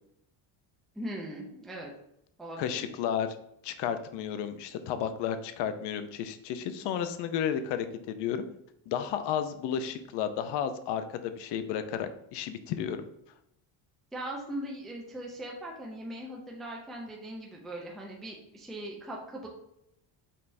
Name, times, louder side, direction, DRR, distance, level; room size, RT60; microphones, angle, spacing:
voice 1, 1.0-1.9 2.4-2.8 14.1-19.5, right 1 dB, ahead, -1 dB, 0.4 m, -40 dB
voice 2, 2.6-3.4 3.6-8.5 8.9-13.0, left 8 dB, 60° left, 10 dB, 0.5 m, -32 dB
5.4 x 3.3 x 2.6 m, 0.78 s
cardioid pair, 160°, 48 cm